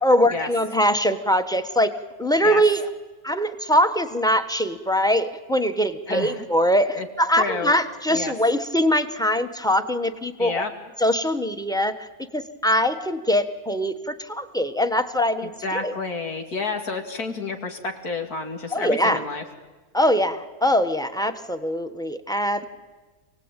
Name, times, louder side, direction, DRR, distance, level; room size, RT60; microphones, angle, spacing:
voice 1, 0.0-1.9 2.2-2.9 3.2-10.6 11.0-12.1 12.3-15.9 18.7-19.2 19.9-22.6, equal, 5° left, 8 dB, 1.1 m, -22 dB
voice 2, 6.1-6.5 6.9-7.1 7.3-7.7 8.1-8.3 10.4-10.7 15.4-19.4, left 3 dB, 90° left, 4 dB, 3.0 m, -30 dB
27.5 x 18.5 x 9.1 m, 1.3 s
omnidirectional pair, 1.6 m